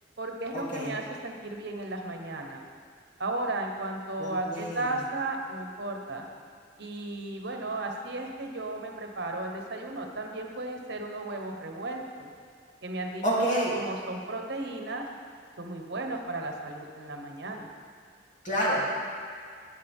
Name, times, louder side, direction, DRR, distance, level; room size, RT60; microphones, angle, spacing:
voice 1, 0.2-2.6 3.2-6.3 6.8-12.3 12.8-13.3 13.7-15.1 15.6-17.7, right 2 dB, 60° right, 2 dB, 1.2 m, -35 dB
voice 2, 4.2-4.9 13.2-13.7 18.4-18.8, equal, 40° left, -7 dB, 3.3 m, -28 dB
18.0 x 8.8 x 3.7 m, 2.2 s
head